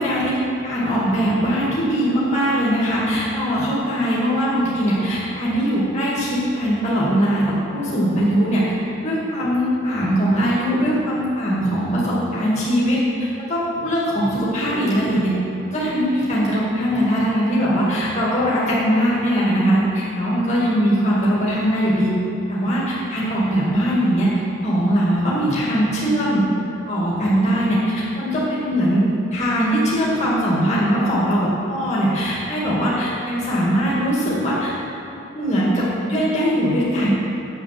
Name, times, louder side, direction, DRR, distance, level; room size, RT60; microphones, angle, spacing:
voice 1, 0.0-8.7 9.0-15.3 15.7-22.1 22.5-26.4 26.9-34.7 35.3-37.1, equal, 30° left, -7 dB, 2.3 m, -21 dB
8.7 x 7.4 x 7.6 m, 3.0 s
head